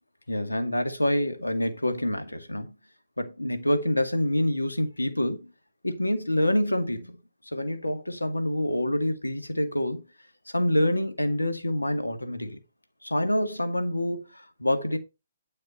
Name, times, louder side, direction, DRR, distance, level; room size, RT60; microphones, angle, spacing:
voice 1, 0.3-2.7 3.2-5.5 5.8-7.2 7.5-10.1 10.5-12.6 13.0-15.0, left 1 dB, 85° left, 2.0 m, -27 dB
10.0 x 6.5 x 4.3 m
figure-of-eight pair, 130°, 0 cm